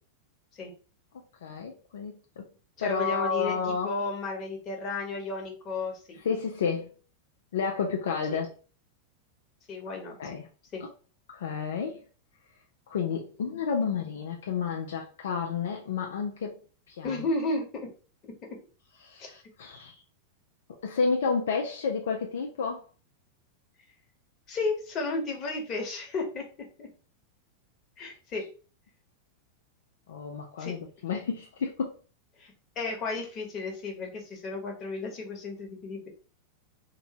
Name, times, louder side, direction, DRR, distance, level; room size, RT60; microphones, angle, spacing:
voice 1, 1.4-2.5 2.8-3.9 6.1-6.9 7.5-8.5 10.2-10.5 10.8-10.9 11.3-12.0 12.9-16.6 16.9-17.2 19.0-20.0 20.8-22.9 30.1-32.0, left 5 dB, 60° left, 0.4 m, -31 dB
voice 2, 2.8-6.2 8.3-8.4 9.7-10.2 10.7-10.8 17.0-17.6 24.5-26.4 26.8-26.9 28.0-28.4 30.6-30.7 32.4-36.1, left 3 dB, 30° left, 1.1 m, -33 dB
3.0 x 2.6 x 2.9 m
figure-of-eight pair, 90°, 0 cm